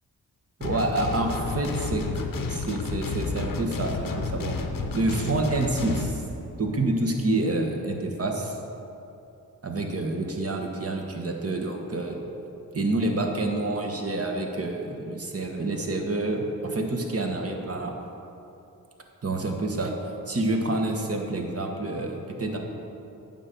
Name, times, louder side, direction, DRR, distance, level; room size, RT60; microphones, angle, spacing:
sound 1, 0.6-6.1, left 4 dB, 60° left, 0.9 m, -31 dB
voice 1, 0.6-2.0 2.5-4.5 4.9-6.2 6.6-8.5 9.6-12.2 12.7-17.9 19.2-19.9 20.3-22.6, right 2 dB, 40° right, 2 dB, 1.3 m, -28 dB
9.2 x 3.9 x 6.8 m, 2.8 s
cardioid pair, 55°, 38 cm